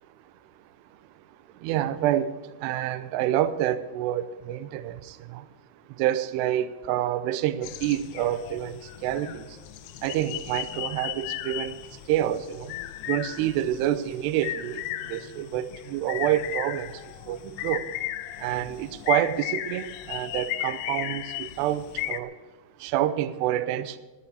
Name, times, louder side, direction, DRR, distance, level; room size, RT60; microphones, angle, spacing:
voice 1, 1.6-2.3 2.6-5.4 6.0-9.5 10.0-11.8 12.1-12.7 13.1-14.8 15.1-16.9 17.3-17.9 18.4-22.3 22.8-24.0, right 12 dB, 80° right, 12 dB, 2.5 m, -27 dB
sound 1, 7.6-22.2, left 13 dB, 90° left, 2.4 m, -35 dB
11.0 x 10.5 x 8.2 m, 1.2 s
omnidirectional pair, 5.5 m